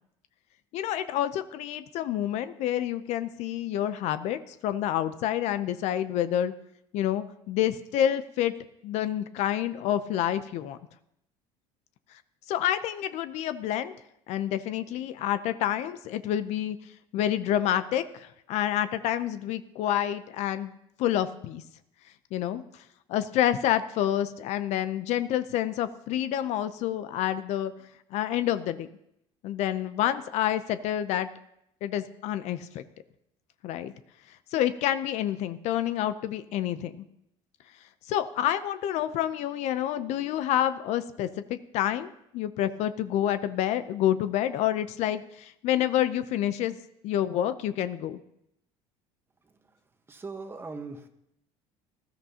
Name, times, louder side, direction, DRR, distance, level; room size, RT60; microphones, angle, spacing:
voice 1, 0.7-6.5 6.9-8.5 8.8-10.8 12.5-13.9 14.3-16.8 17.1-20.7 21.0-21.6 22.3-22.6 23.1-27.7 28.1-28.9 29.4-31.3 31.8-32.8 33.6-33.9 34.5-37.0 38.1-46.8 47.0-48.2, left 11 dB, 60° left, 12 dB, 0.6 m, -28 dB
voice 2, 50.1-51.1, right 4 dB, 20° right, 6 dB, 1.2 m, -39 dB
19.0 x 13.5 x 2.9 m, 0.78 s
cardioid pair, 120°, 13 cm